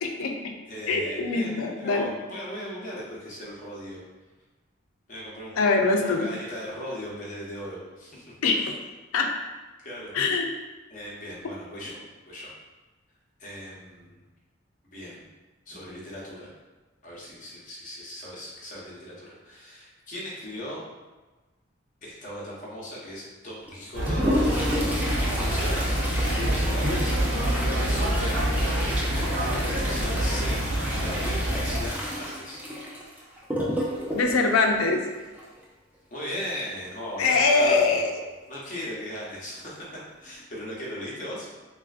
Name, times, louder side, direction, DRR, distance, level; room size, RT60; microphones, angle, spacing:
voice 1, 0.0-0.5 0.9-2.1 5.6-6.3 8.4-8.8 9.1-9.3 10.1-10.5 34.1-35.0 37.2-38.1, left 3 dB, 90° left, 3 dB, 0.4 m, -23 dB
voice 2, 0.7-4.0 5.1-8.2 9.8-10.1 10.9-12.0 12.3-12.5 13.4-14.2 14.9-15.2 15.7-16.5 17.0-20.8 22.0-24.7 25.0-25.9 26.2-29.3 29.7-30.6 31.0-32.6 36.1-38.1 38.5-39.8 40.2-41.5, equal, 40° left, -6 dB, 0.7 m, -38 dB
Toilet flush, 23.7-35.6 37.5-37.6 37.9-38.0 38.8-38.9 39.6-39.8 40.3-40.4, equal, 5° right, 0.4 m, -31 dB
sound 1, 23.9-31.9, right 1 dB, 65° right, 0.6 m, -26 dB
3.2 x 2.5 x 2.3 m, 1.2 s
head